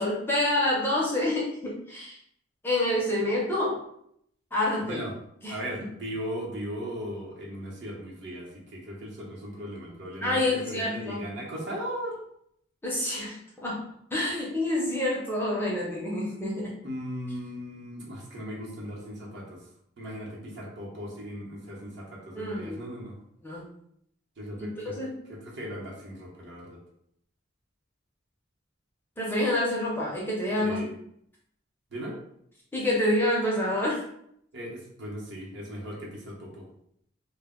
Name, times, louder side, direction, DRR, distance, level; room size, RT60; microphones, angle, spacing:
voice 1, 0.0-2.2 2.6-3.8 4.5-5.0 5.4-5.6 10.2-11.3 12.8-13.8 14.1-16.8 22.3-22.8 23.4-23.7 24.9-25.1 29.2-30.8 32.7-34.0, left 1 dB, 10° left, -4 dB, 0.5 m, -27 dB
voice 2, 4.8-5.1 5.5-12.2 16.8-19.6 20.0-23.2 24.4-25.0 25.3-26.8 30.6-31.0 31.9-32.2 34.5-36.7, equal, 60° right, -3 dB, 0.8 m, -37 dB
2.1 x 2.1 x 3.6 m, 0.71 s
head